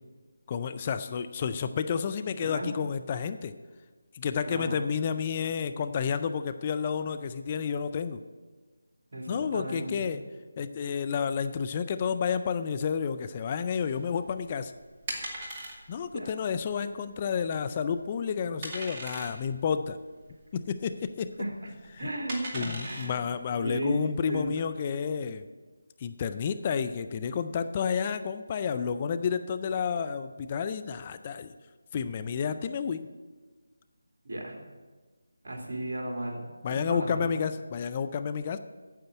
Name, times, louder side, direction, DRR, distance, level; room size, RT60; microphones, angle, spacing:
voice 1, 0.5-3.5 4.1-8.2 9.3-10.2 10.6-14.7 15.9-20.0 20.5-21.3 21.9-22.1 22.5-25.5 26.0-31.5 31.9-33.1 36.6-38.6, left 6 dB, 25° left, 10 dB, 0.5 m, -30 dB
voice 2, 4.4-4.8 9.1-10.1 16.1-16.3 21.4-21.5 22.0-23.2 23.6-24.5 34.2-34.5 35.4-37.3, right 1 dB, 60° right, 1 dB, 3.0 m, -34 dB
sound 1, 13.8-24.4, right 1 dB, 25° right, 2.4 m, -42 dB
9.3 x 7.9 x 8.1 m, 1.3 s
figure-of-eight pair, 160°, 0 cm